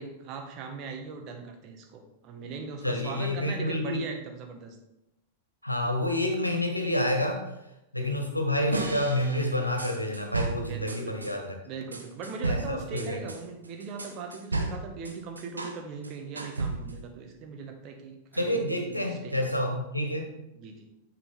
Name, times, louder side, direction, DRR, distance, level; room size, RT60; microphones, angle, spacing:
voice 1, 0.0-4.8 10.7-11.3 11.7-19.6 20.5-20.9, right 5 dB, 40° right, 4 dB, 1.6 m, -40 dB
voice 2, 2.8-4.0 5.6-7.5 7.9-11.5 12.4-13.2 18.3-20.3, left 1 dB, 90° left, 3 dB, 1.5 m, -28 dB
sound 1, 8.7-11.3 11.9-15.8 16.0-17.1, right 2 dB, 80° right, 1.1 m, -34 dB
10.0 x 6.9 x 3.6 m, 0.89 s
figure-of-eight pair, 95°, 0 cm